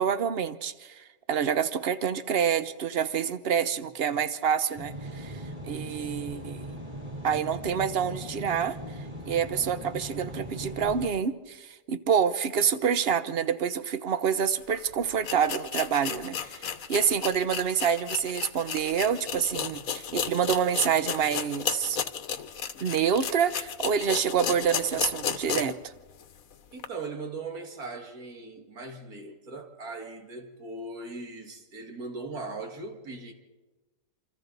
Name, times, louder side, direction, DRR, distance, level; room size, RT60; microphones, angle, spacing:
voice 1, 0.0-6.6 7.2-8.8 9.3-22.0 22.8-25.8, right 7 dB, 50° right, 0.9 m, -27 dB
sound 1, 4.8-11.1, right 1 dB, 25° right, 7.0 m, -39 dB
sound 2, 14.7-14.8 15.2-25.8 26.2-26.3 26.8-26.9, left 7 dB, 70° left, 1.4 m, -33 dB
voice 2, 26.7-33.3, right 3 dB, 90° right, 2.6 m, -39 dB
27.5 x 26.5 x 4.0 m
omnidirectional pair, 1.5 m